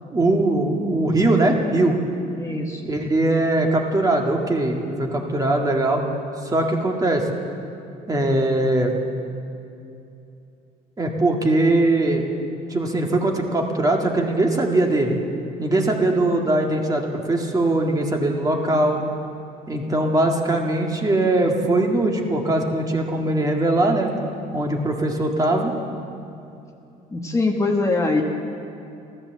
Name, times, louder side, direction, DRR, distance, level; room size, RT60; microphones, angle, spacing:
voice 1, 0.1-2.0 2.9-6.0 6.4-7.3 8.1-9.0 11.0-12.3 12.7-15.2 15.6-19.0 19.7-24.1 24.5-25.7, right 2 dB, 20° right, 1 dB, 1.8 m, -21 dB
voice 2, 2.4-2.8 27.1-28.2, left 3 dB, 20° left, 1 dB, 1.3 m, -22 dB
14.0 x 13.0 x 7.6 m, 2.7 s
cardioid pair, 110°, 17 cm